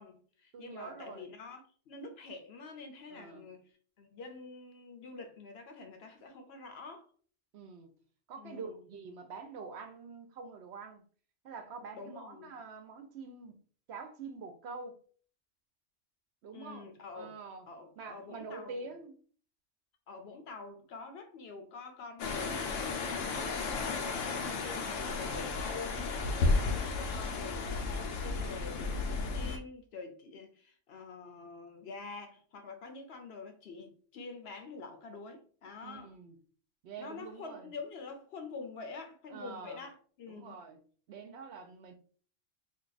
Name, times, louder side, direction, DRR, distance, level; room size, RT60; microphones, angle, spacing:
voice 1, 0.0-3.6 4.0-7.1 8.4-8.8 11.9-12.5 16.5-17.3 17.7-18.7 20.1-36.1 37.0-40.6, left 4 dB, 65° left, 0.8 m, -47 dB
voice 2, 0.5-1.3 3.1-3.5 7.5-7.9 8.3-11.0 11.4-13.6 13.9-15.0 16.4-17.7 18.0-19.2 35.8-36.4 36.8-37.7 39.3-39.8 40.2-40.8 41.1-41.9, right 4 dB, 65° right, 0.8 m, -46 dB
sound 1, 22.2-29.6, left 3 dB, 85° left, 1.0 m, -33 dB
2.6 x 2.2 x 3.9 m
omnidirectional pair, 1.3 m